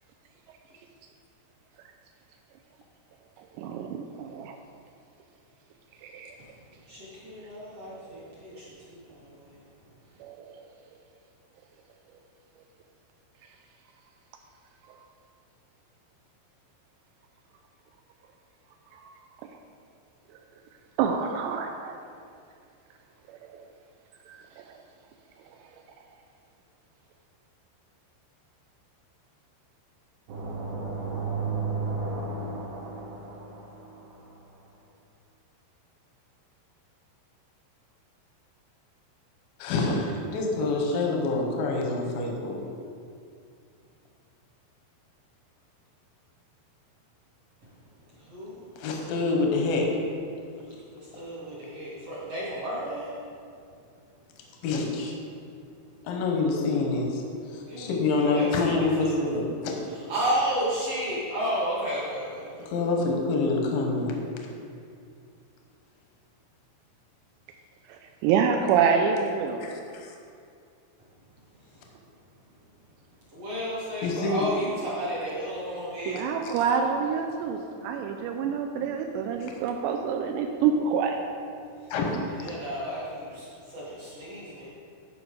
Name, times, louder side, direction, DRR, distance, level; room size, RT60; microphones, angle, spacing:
voice 1, 3.6-4.6 6.0-6.4 7.9-8.2 10.2-10.6 14.9-15.0 18.9-19.1 21.0-22.0 23.4-23.6 24.3-24.7 67.9-69.7 76.1-81.2, right 6 dB, 90° right, 4 dB, 2.4 m, -27 dB
voice 2, 6.9-9.6 48.1-48.7 50.9-53.2 57.7-57.9 58.1-59.4 59.9-62.7 71.6-71.8 73.3-76.3 81.8-81.9 82.3-84.7, equal, 55° right, -8 dB, 1.7 m, -33 dB
sound 1, 30.3-34.1, right 3 dB, 70° right, 3.0 m, -33 dB
voice 3, 39.6-42.6 48.8-49.9 54.6-55.2 56.0-57.2 57.5-59.8 62.7-64.1 69.7-70.1 74.0-74.5 81.9-82.2, left 3 dB, 80° left, 1 dB, 2.0 m, -26 dB
13.0 x 5.2 x 4.9 m, 2.4 s
omnidirectional pair, 5.6 m